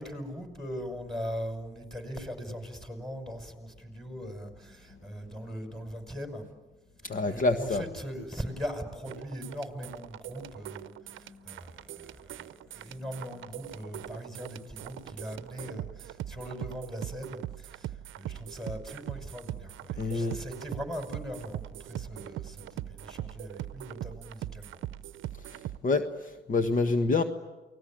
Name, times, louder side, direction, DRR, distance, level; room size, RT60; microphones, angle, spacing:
voice 1, 0.0-6.5 7.3-24.8, equal, ahead, 5 dB, 5.9 m, -40 dB
voice 2, 7.0-7.8 20.0-20.4 25.5-27.2, left 3 dB, 40° left, 7 dB, 1.5 m, -27 dB
sound 1, 9.0-25.8, right 13 dB, 80° right, 0.8 m, -41 dB
29.0 x 20.0 x 9.0 m, 1.2 s
cardioid pair, 90°, 20 cm